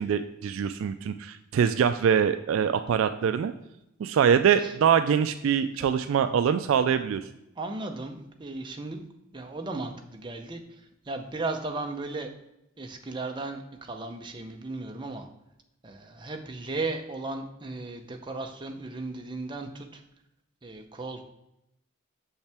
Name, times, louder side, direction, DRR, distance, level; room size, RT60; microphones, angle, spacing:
voice 1, 0.0-3.5 4.0-7.2, right 7 dB, 65° right, 10 dB, 0.3 m, -24 dB
voice 2, 7.6-9.1 9.3-10.6 11.1-12.3 12.8-15.3 15.8-20.0 20.6-21.3, right 2 dB, 20° right, 4 dB, 0.6 m, -35 dB
6.6 x 5.5 x 3.4 m, 0.85 s
head